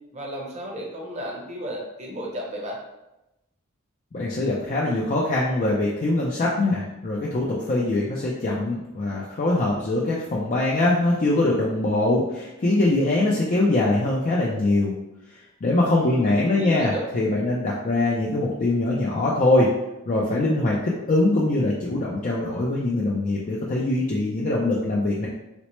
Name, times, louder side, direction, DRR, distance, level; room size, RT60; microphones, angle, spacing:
voice 1, 0.1-2.8 15.9-17.1, equal, 35° right, -2 dB, 0.8 m, -33 dB
voice 2, 4.1-14.9 15.6-19.7 20.1-25.3, left 2 dB, 40° left, -4 dB, 0.4 m, -23 dB
4.1 x 2.0 x 3.0 m, 0.95 s
head